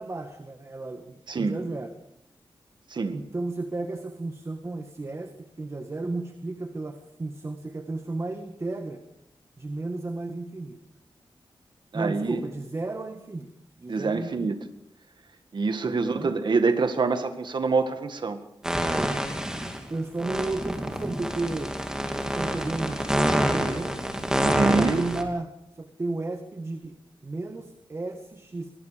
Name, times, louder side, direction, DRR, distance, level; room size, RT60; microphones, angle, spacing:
voice 1, 0.0-1.9 3.1-9.0 9.6-10.8 11.9-13.5 13.8-14.6 15.8-16.3 19.9-21.7 22.1-23.9 24.7-27.0 27.2-28.7, right 2 dB, 30° right, 7 dB, 1.7 m, -33 dB
voice 2, 11.9-12.4 13.9-14.6 15.5-18.4 24.4-25.1, right 4 dB, 60° right, 8 dB, 1.9 m, -25 dB
sound 1, 18.6-19.8 20.2-25.2, equal, 5° right, 2.9 m, -27 dB
25.0 x 20.5 x 5.1 m, 0.80 s
wide cardioid pair, 110°, 9 cm